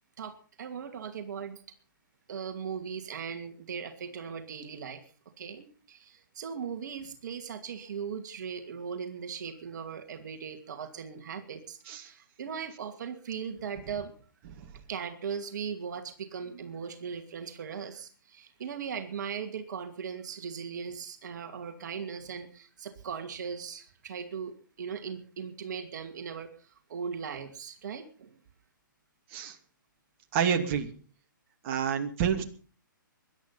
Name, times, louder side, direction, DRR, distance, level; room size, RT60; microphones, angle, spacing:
voice 1, 0.2-1.6 2.3-5.0 5.4-14.1 14.9-26.5 26.9-28.3, right 6 dB, 60° right, 6 dB, 2.5 m, -38 dB
voice 2, 30.3-30.9 31.6-32.4, right 8 dB, 40° right, 4 dB, 2.7 m, -28 dB
22.0 x 11.5 x 5.8 m, 0.41 s
hypercardioid pair, 140°, 11 cm